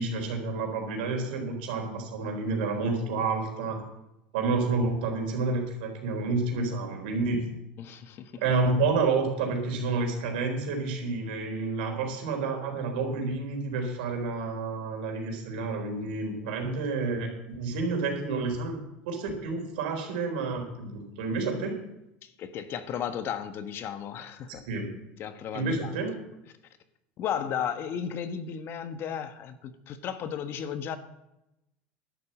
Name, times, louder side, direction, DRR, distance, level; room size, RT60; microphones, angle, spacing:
voice 1, 0.0-3.9 4.3-7.4 8.4-18.8 19.1-21.8 24.5-24.9 25.5-26.2, right 3 dB, 85° right, 3 dB, 4.1 m, -29 dB
voice 2, 7.8-8.4 22.2-24.6 25.2-26.0 27.2-31.0, left 8 dB, 50° left, 10 dB, 1.3 m, -34 dB
11.5 x 8.3 x 7.5 m, 0.88 s
supercardioid pair, 110°, 5 cm